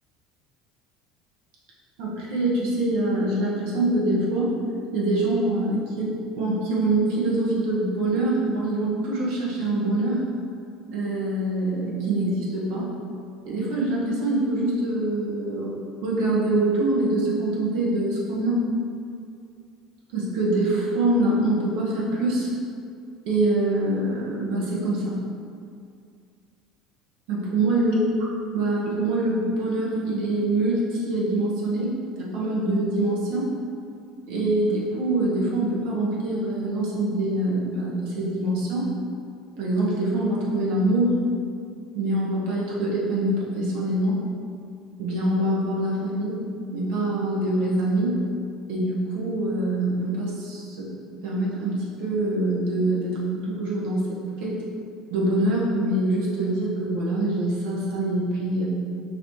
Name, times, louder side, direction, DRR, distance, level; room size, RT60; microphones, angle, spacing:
voice 1, 2.0-4.5 4.9-10.2 10.9-12.9 13.4-18.6 20.1-22.5 23.2-25.2 27.3-28.0 28.5-33.5 34.3-38.9 39.6-41.1 41.9-44.2 45.0-46.4 46.7-48.1 48.7-50.9 51.2-54.6 55.1-58.7, right 1 dB, 70° right, -5 dB, 1.2 m, -24 dB
5.7 x 2.8 x 3.1 m, 2.4 s
hypercardioid pair, 75°, 0 cm